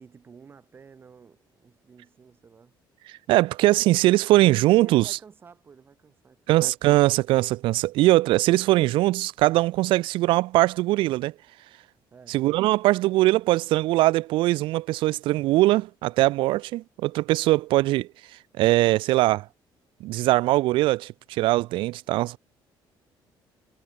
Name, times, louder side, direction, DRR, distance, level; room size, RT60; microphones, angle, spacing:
voice 1, 0.0-2.8 4.8-6.6 12.1-12.4, right 6 dB, 25° right, 3.8 m, -51 dB
voice 2, 3.3-5.2 6.5-11.3 12.3-18.1 18.6-19.5 20.0-22.4, right 18 dB, 85° right, 0.4 m, -21 dB
cardioid pair, 175°, 8 cm